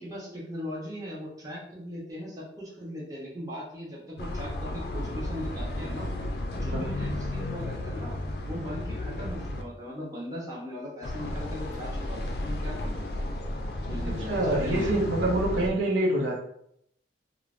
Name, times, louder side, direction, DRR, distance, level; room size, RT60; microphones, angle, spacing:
voice 1, 0.0-6.1 6.5-8.2 8.5-13.1 13.9-15.0, equal, 20° right, -6 dB, 0.7 m, -39 dB
sound 1, 4.2-9.6 11.0-15.7, left 1 dB, 60° left, 0.4 m, -33 dB
voice 2, 14.1-16.4, right 1 dB, 85° right, -2 dB, 0.6 m, -26 dB
3.0 x 2.0 x 2.4 m, 0.72 s
head